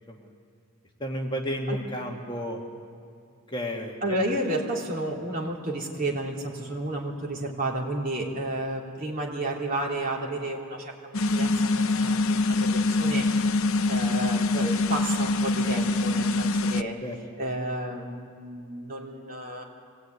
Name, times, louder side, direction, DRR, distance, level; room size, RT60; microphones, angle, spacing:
voice 1, 1.0-2.6 3.5-4.0 17.0-17.2, equal, 20° left, 1 dB, 1.8 m, -32 dB
voice 2, 4.0-13.3 13.9-17.0 17.4-19.6, right 1 dB, 40° right, -2 dB, 3.4 m, -31 dB
sound 1, 11.1-16.8, left 2 dB, 70° left, 0.7 m, -24 dB
25.0 x 18.5 x 9.5 m, 2.2 s
head